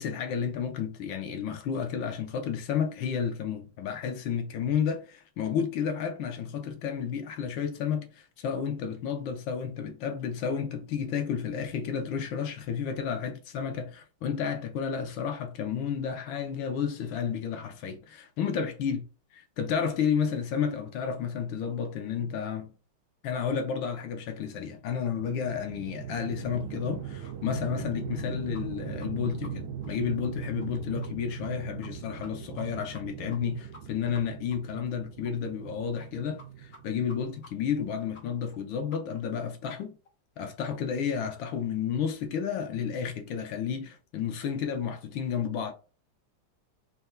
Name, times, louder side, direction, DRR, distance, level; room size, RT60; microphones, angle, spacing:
voice 1, 0.0-19.0 19.6-22.7 23.2-40.0 40.4-45.7, left 7 dB, 75° left, 1.4 m, -31 dB
sound 1, 25.2-37.4, right 8 dB, 80° right, 1.4 m, -40 dB
sound 2, 28.5-28.6 29.0-29.1 29.4-29.5 29.8-29.9 30.2-30.3 30.6-30.7 31.0-31.1 31.4-31.5 31.8-31.9 32.2-32.6 32.9-33.0 33.3-33.4 33.7-33.8 34.1-34.2 34.5-34.6 34.9-35.0 35.2-35.3 35.6-35.7 36.0-36.1 36.4-36.5 36.7-36.8 37.1-37.2 37.4-37.5 37.8-37.9 38.1-38.2 38.5-38.6 38.9-39.0 39.3-39.4 39.7-39.8 40.0-40.1, left 2 dB, 45° left, 1.0 m, -50 dB
4.4 x 3.4 x 2.2 m
omnidirectional pair, 2.2 m